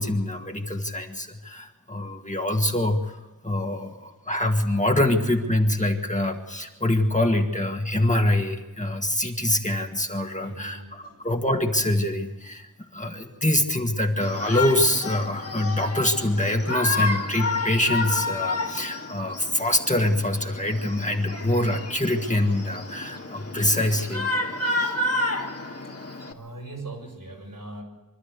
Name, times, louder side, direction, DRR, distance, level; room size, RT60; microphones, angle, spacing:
voice 1, 0.0-12.7 12.9-24.3, left 1 dB, 20° left, 3 dB, 1.9 m, -25 dB
voice 2, 10.4-11.2 26.3-27.8, right 2 dB, 80° right, -1 dB, 6.1 m, -40 dB
Shout, 14.2-26.3, left 2 dB, 45° left, 2.0 m, -30 dB
25.0 x 12.5 x 8.3 m, 1.1 s
wide cardioid pair, 50°, 34 cm